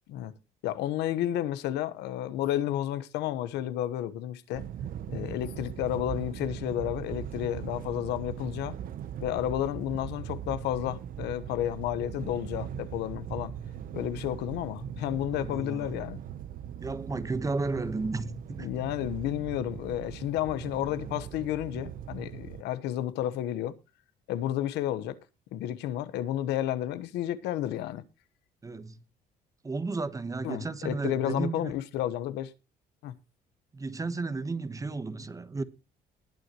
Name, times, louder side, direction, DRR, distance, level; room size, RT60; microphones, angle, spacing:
voice 1, 0.6-4.6 5.1-8.7 9.2-13.5 13.9-16.2 18.6-23.8 24.3-25.2 25.5-28.0 30.4-32.5 33.0-33.1, left 12 dB, 85° left, 1.2 m, -31 dB
sound 1, 4.5-22.6, right 9 dB, 55° right, 0.9 m, -40 dB
voice 2, 15.3-15.9 16.8-18.7 28.6-28.9 29.6-31.7 33.7-35.6, right 3 dB, 20° right, 1.2 m, -33 dB
20.0 x 8.0 x 3.0 m
cardioid pair, 110°, 17 cm